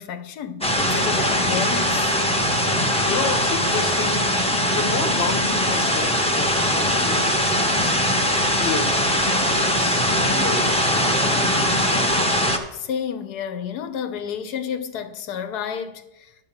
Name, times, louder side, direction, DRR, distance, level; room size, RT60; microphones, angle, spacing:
voice 1, 0.0-2.2 12.7-16.4, left 7 dB, 70° left, 1.3 m, -31 dB
sound 1, 0.6-12.6, equal, 5° left, 0.5 m, -21 dB
voice 2, 3.1-4.3 4.7-8.0 8.5-11.9, left 5 dB, 40° left, 1.1 m, -31 dB
10.5 x 5.0 x 7.2 m
omnidirectional pair, 1.8 m